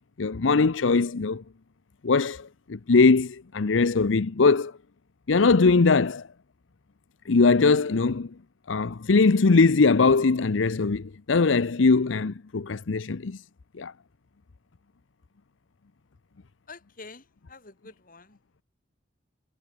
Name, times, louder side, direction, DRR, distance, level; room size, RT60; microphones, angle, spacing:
voice 1, 0.2-1.4 2.0-4.7 5.3-6.2 7.3-8.3 8.7-13.4 13.8-13.9, left 4 dB, 90° left, 0.7 m, -21 dB
voice 2, 16.7-17.2 17.5-18.4, left 3 dB, 45° left, 4.3 m, -46 dB
head